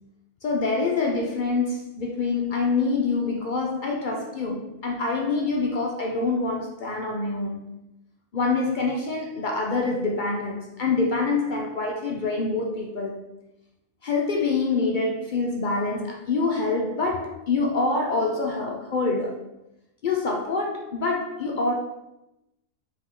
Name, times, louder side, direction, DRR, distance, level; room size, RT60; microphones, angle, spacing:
voice 1, 0.4-7.6 8.3-13.2 14.0-19.4 20.0-21.7, left 3 dB, 65° left, 0.4 m, -26 dB
5.1 x 2.8 x 3.7 m
omnidirectional pair, 1.5 m